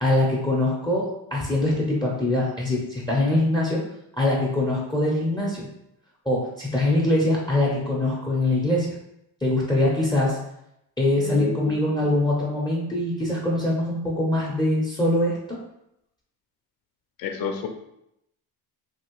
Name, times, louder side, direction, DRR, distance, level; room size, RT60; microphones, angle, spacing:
voice 1, 0.0-3.8 4.2-5.7 6.3-8.9 9.4-10.4 11.0-15.6, left 1 dB, 10° left, -3 dB, 0.6 m, -23 dB
voice 2, 11.1-12.0 17.2-17.7, left 4 dB, 55° left, 5 dB, 0.5 m, -29 dB
2.9 x 2.7 x 2.9 m, 0.81 s
cardioid pair, 100°, 42 cm